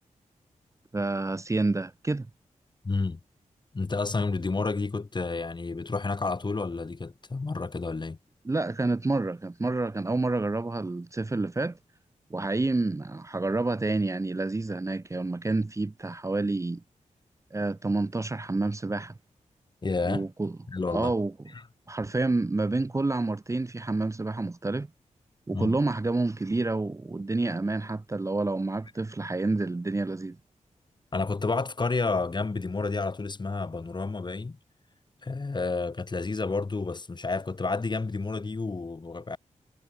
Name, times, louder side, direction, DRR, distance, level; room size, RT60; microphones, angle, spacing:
voice 1, 0.9-2.3 8.4-11.8 12.3-16.8 17.5-19.2 20.0-20.6 20.9-21.3 21.9-24.9 25.5-30.4, right 2 dB, 25° right, 1.3 m, -28 dB
voice 2, 2.8-3.2 3.7-8.2 19.8-20.2 20.7-21.1 25.5-25.8 31.1-34.6 35.2-39.4, left 3 dB, 35° left, 3.9 m, -30 dB
wide cardioid pair, 110°, 13 cm